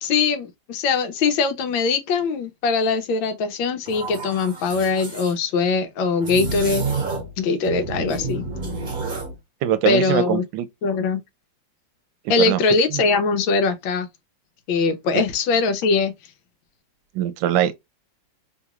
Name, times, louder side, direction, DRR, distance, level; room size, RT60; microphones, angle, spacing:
voice 1, 0.0-6.9 7.4-8.4 9.8-10.4 10.8-11.2 12.3-14.1 14.7-16.1, left 4 dB, 90° left, 1.5 m, -21 dB
sound 1, 3.9-5.3 6.2-7.4 7.6-9.3, right 3 dB, 30° right, 1.3 m, -29 dB
voice 2, 9.6-10.7 12.2-13.0 15.1-15.2 17.1-17.7, right 11 dB, 80° right, 1.3 m, -23 dB
3.4 x 2.9 x 2.3 m
omnidirectional pair, 2.0 m